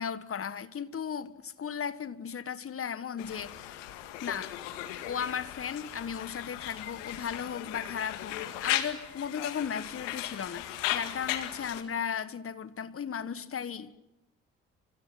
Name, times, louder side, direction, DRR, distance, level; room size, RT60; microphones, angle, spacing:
voice 1, 0.0-3.8 4.2-4.6 5.0-13.9, left 7 dB, 35° left, 1.6 m, -36 dB
Conversation, 3.2-11.8, left 14 dB, 70° left, 2.1 m, -37 dB
29.0 x 27.0 x 5.9 m
figure-of-eight pair, 45°, 37 cm